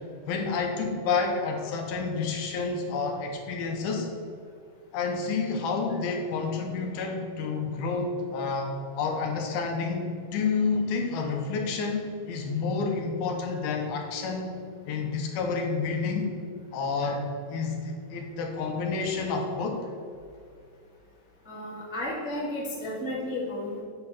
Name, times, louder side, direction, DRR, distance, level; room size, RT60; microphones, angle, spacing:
voice 1, 0.3-4.1 4.9-10.0 10.3-14.6 14.9-16.3 16.7-19.8, left 4 dB, 75° left, 2 dB, 2.6 m, -29 dB
voice 2, 21.4-23.8, left 1 dB, 5° right, -7 dB, 0.4 m, -33 dB
8.8 x 4.4 x 7.0 m, 2.3 s
omnidirectional pair, 4.8 m